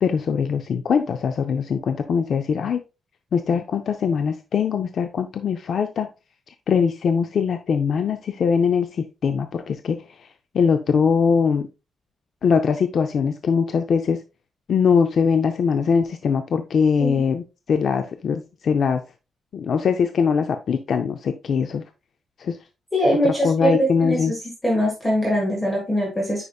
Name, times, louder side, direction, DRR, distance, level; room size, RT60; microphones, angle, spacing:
voice 1, 0.0-2.8 3.3-6.1 6.7-10.3 10.5-11.7 12.4-14.2 14.7-19.0 19.5-21.8 22.4-22.6 23.2-24.3, left 6 dB, 45° left, 8 dB, 0.5 m, -22 dB
voice 2, 22.9-24.4 24.6-26.4, equal, 10° left, -1 dB, 1.7 m, -22 dB
9.4 x 5.0 x 2.3 m, 0.28 s
wide cardioid pair, 170°, 0 cm